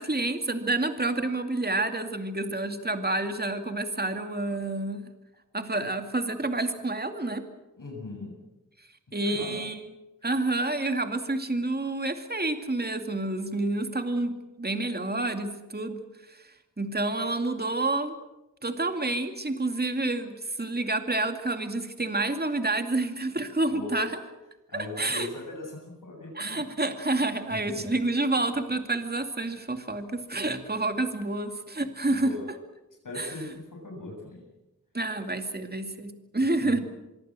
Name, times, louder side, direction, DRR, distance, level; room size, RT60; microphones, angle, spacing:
voice 1, 0.0-5.1 5.5-7.4 9.1-9.7 10.2-16.0 16.3-18.2 18.6-24.2 24.7-25.3 26.3-32.3 33.2-33.3 34.9-36.8, right 2 dB, 30° right, 7 dB, 2.4 m, -29 dB
voice 2, 7.8-8.3 9.2-9.6 23.7-24.1 24.7-26.7 27.5-27.9 32.1-32.4 33.0-34.4 36.6-36.8, left 2 dB, 75° left, -1 dB, 7.6 m, -38 dB
25.5 x 22.5 x 7.7 m, 1.0 s
wide cardioid pair, 60°, 33 cm